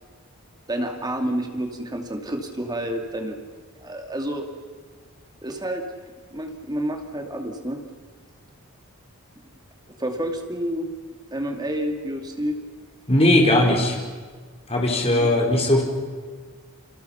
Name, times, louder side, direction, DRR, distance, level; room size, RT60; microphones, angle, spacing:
voice 1, 0.7-3.4 3.8-4.5 5.4-5.8 6.3-7.8 10.0-10.8 11.3-12.6 15.1-15.3, right 1 dB, 20° right, 4 dB, 2.5 m, -29 dB
voice 2, 13.1-14.0 14.7-15.8, left 1 dB, 25° left, 1 dB, 4.6 m, -18 dB
30.0 x 26.5 x 5.8 m, 1.5 s
head